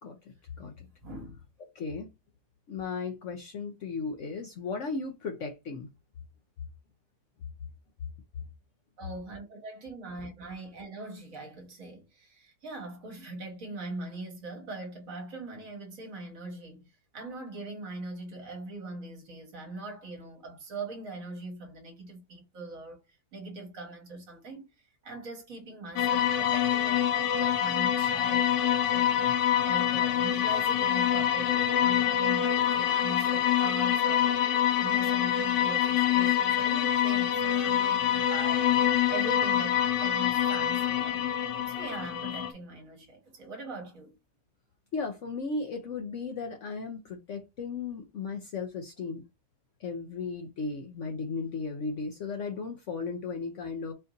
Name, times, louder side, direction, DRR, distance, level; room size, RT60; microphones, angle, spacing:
voice 1, 0.0-0.9 1.7-2.1 2.7-5.9 8.4-8.5 44.9-49.2 49.8-53.9, left 4 dB, 60° left, 0.8 m, -36 dB
voice 2, 1.0-1.4 9.0-23.0 23.3-24.7 25.0-34.4 34.8-38.8 39.1-41.3 41.7-44.2, right 2 dB, 55° right, 1.5 m, -41 dB
sound 1, 26.0-42.5, left 10 dB, 85° left, 1.2 m, -26 dB
4.3 x 2.6 x 3.8 m
omnidirectional pair, 1.8 m